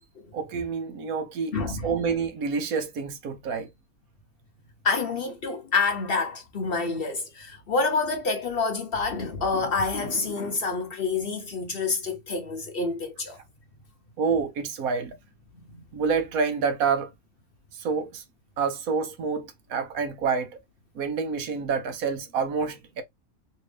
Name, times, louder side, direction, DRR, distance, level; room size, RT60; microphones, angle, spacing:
voice 1, 0.3-3.7 14.2-15.1 15.9-17.1 17.7-18.2 18.6-20.6 20.9-23.0, right 5 dB, 80° right, 1.3 m, -28 dB
voice 2, 1.5-1.9 4.8-13.4 15.7-15.8, left 4 dB, 50° left, 0.8 m, -27 dB
3.3 x 2.7 x 3.2 m
omnidirectional pair, 1.5 m